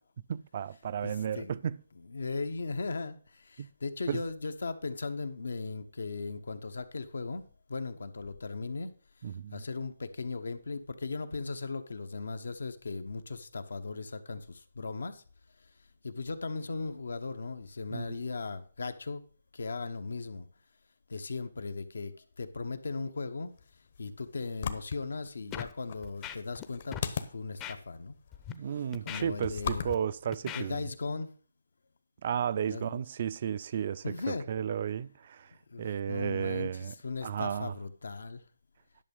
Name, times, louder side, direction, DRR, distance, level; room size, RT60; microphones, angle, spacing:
voice 1, 0.3-1.8 3.6-3.7 4.1-4.2 9.2-9.6 17.9-18.2 28.5-30.9 32.2-35.5 35.8-36.9 37.2-37.7, right 8 dB, 45° right, 0.4 m, -33 dB
voice 2, 1.0-1.6 2.1-8.9 9.5-15.2 16.0-19.2 19.5-20.5 21.1-23.5 24.0-28.2 28.7-29.9 30.5-31.3 32.6-33.0 34.0-34.5 35.7-38.4, left 3 dB, 80° left, 1.1 m, -37 dB
sound 1, 23.5-31.1, left 7 dB, 50° left, 1.0 m, -41 dB
Scratching (performance technique), 25.5-25.7 26.0-26.7 26.9-27.1 27.6-27.8 28.3-28.5 28.9-30.0 30.3-30.6, left 10 dB, 20° left, 0.6 m, -40 dB
11.0 x 6.2 x 5.3 m
hypercardioid pair, 160°, 0 cm